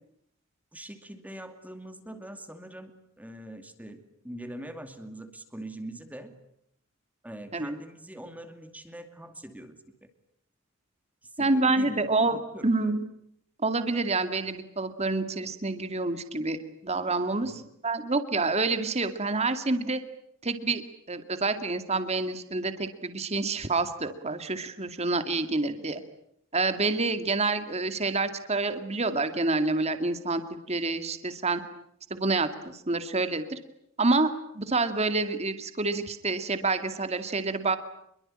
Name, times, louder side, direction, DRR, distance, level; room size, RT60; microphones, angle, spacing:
voice 1, 0.7-2.9 3.2-6.3 7.2-10.1 11.2-12.9 17.4-17.7 25.7-25.9, right 1 dB, 10° right, 7 dB, 2.5 m, -43 dB
voice 2, 11.4-12.4 12.6-13.0 13.6-17.5 17.8-20.0 20.4-20.8 21.1-26.0 26.5-30.4 30.7-31.6 32.1-33.6 34.0-37.8, right 3 dB, 30° right, 9 dB, 2.3 m, -27 dB
27.0 x 23.5 x 8.9 m, 0.74 s
head